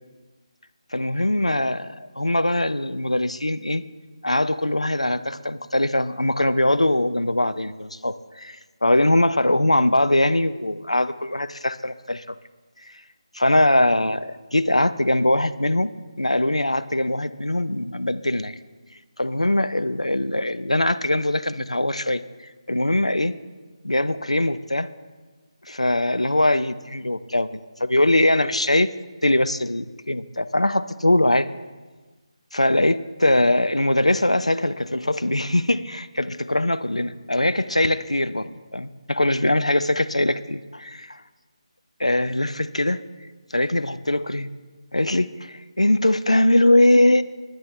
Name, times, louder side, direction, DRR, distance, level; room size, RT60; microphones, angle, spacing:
voice 1, 0.9-1.8 2.2-3.8 4.2-8.6 8.8-12.2 13.3-15.9 16.2-18.5 19.2-22.2 22.7-23.3 23.8-24.9 25.7-27.5 27.8-28.9 29.2-31.5 32.5-41.2 42.0-43.0 43.5-44.5 44.9-47.2, left 1 dB, 85° left, 12 dB, 0.6 m, -21 dB
20.0 x 9.7 x 3.3 m, 1.3 s
figure-of-eight pair, 155°, 3 cm